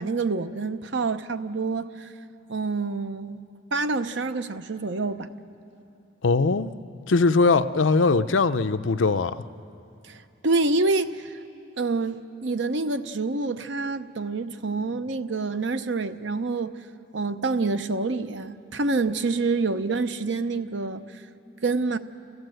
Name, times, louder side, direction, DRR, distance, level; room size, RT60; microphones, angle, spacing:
voice 1, 0.0-2.1 2.5-3.4 3.7-5.3 10.1-11.3 11.8-16.8 17.1-21.0 21.6-22.0, right 3 dB, 65° right, 10 dB, 0.8 m, -27 dB
voice 2, 6.2-6.7 7.1-9.4, left 4 dB, 75° left, 11 dB, 0.6 m, -21 dB
28.5 x 15.0 x 7.8 m, 2.7 s
head